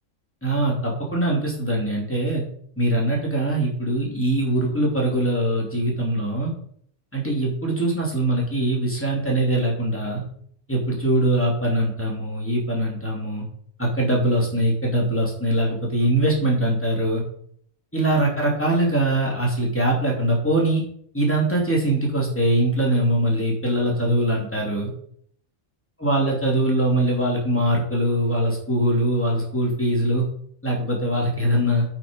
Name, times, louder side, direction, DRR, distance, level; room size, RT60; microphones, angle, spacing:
voice 1, 0.4-2.4 2.8-6.5 7.1-10.2 10.7-13.5 13.8-17.2 17.9-20.8 21.1-24.9 26.0-30.2 30.6-31.9, right 1 dB, 10° left, -3 dB, 3.0 m, -22 dB
8.7 x 5.9 x 5.4 m, 0.63 s
omnidirectional pair, 1.4 m